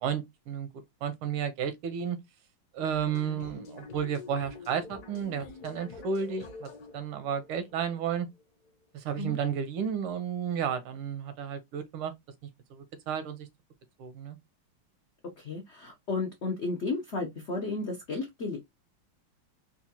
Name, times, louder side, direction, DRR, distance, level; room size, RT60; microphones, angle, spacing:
voice 1, 0.0-0.7 1.0-2.2 2.7-8.3 8.9-12.1 12.7-13.5 14.0-14.4, right 7 dB, 85° right, 1.6 m, -32 dB
sound 1, 2.9-8.7, left 4 dB, 65° left, 1.0 m, -47 dB
voice 2, 15.4-18.8, left 3 dB, 85° left, 0.6 m, -33 dB
4.2 x 2.3 x 2.8 m
omnidirectional pair, 2.3 m